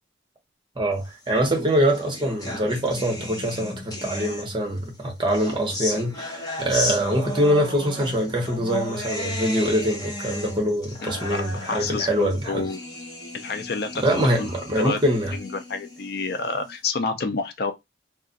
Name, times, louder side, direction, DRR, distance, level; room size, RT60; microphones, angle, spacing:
voice 1, 0.8-12.6 14.0-15.3, equal, 25° right, 1.0 m, -24 dB
sound 1, 1.4-4.8 5.3-16.7, left 1 dB, 20° left, 0.8 m, -34 dB
voice 2, 11.0-12.8 13.3-14.5 14.8-15.0 15.3-17.7, left 4 dB, 55° left, 0.5 m, -29 dB
2.5 x 2.4 x 3.8 m
head